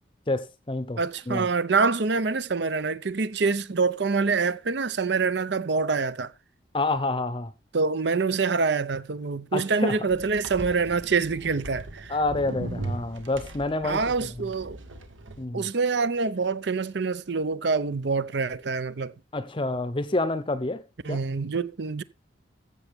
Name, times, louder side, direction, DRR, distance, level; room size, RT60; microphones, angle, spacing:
voice 1, 0.3-1.0 1.3-1.5 6.7-7.5 9.5-10.0 12.1-14.3 15.4-15.7 19.3-20.8 21.1-21.2, left 2 dB, 25° left, 0.7 m, -28 dB
voice 2, 1.0-6.3 7.7-12.2 13.8-14.8 15.5-19.1 21.0-22.0, right 4 dB, 60° right, 0.6 m, -26 dB
sound 1, 10.1-15.4, right 2 dB, 80° right, 1.6 m, -38 dB
14.5 x 7.0 x 3.5 m
head